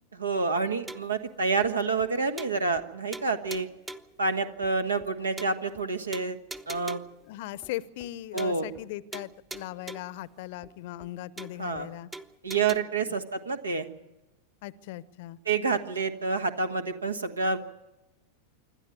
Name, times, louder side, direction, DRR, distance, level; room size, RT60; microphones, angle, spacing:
voice 1, 0.2-3.7 4.2-6.4 6.7-7.0 8.3-8.7 11.6-11.9 12.4-13.9 15.4-17.6, right 4 dB, 75° right, 9 dB, 1.5 m, -28 dB
sound 1, 0.9-1.2 1.6-1.7 2.0-2.1 2.4-2.9 3.1-4.2 4.6-4.7 5.0-5.1 5.4-5.8 6.1-7.2 7.6-7.7 8.0-8.1 8.4-8.9 9.1-10.2 10.6-10.7 11.0-11.1 11.4-11.8 12.1-12.8, right 2 dB, 10° right, 0.8 m, -42 dB
voice 2, 7.3-12.1 13.1-13.2 14.6-15.4, left 15 dB, 50° left, 20 dB, 0.8 m, -38 dB
26.5 x 12.5 x 9.4 m, 0.95 s
figure-of-eight pair, 90°, 0 cm